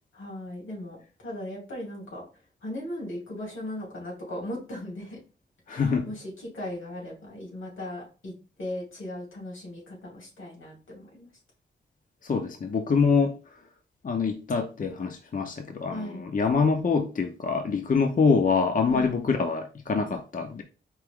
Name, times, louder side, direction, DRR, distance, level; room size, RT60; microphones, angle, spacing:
voice 1, 0.1-2.2 2.6-5.2 5.7-8.3 8.6-11.3 15.9-16.2 18.9-19.1, left 1 dB, 90° left, -3 dB, 2.6 m, -37 dB
voice 2, 5.7-6.1 12.2-13.4 14.0-20.6, left 5 dB, 45° left, 5 dB, 0.6 m, -25 dB
4.6 x 2.9 x 3.5 m, 0.34 s
wide cardioid pair, 95°, 20 cm